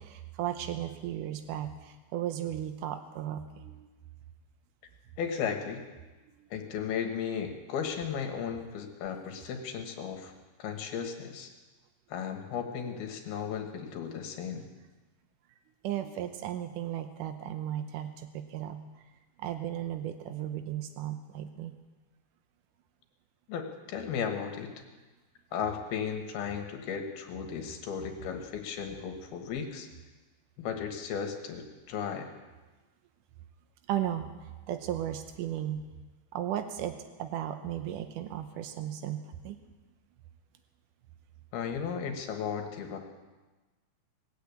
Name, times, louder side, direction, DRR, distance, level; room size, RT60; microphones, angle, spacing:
voice 1, 0.0-3.9 15.8-18.8 19.4-21.7 33.9-35.8 36.3-39.6, right 11 dB, 90° right, 8 dB, 1.8 m, -35 dB
voice 2, 5.2-5.9 6.5-10.3 10.6-11.5 12.1-14.6 23.5-24.7 25.5-29.9 30.6-32.3 41.5-43.0, left 7 dB, 70° left, 4 dB, 3.1 m, -35 dB
20.0 x 8.6 x 8.4 m, 1.2 s
omnidirectional pair, 4.7 m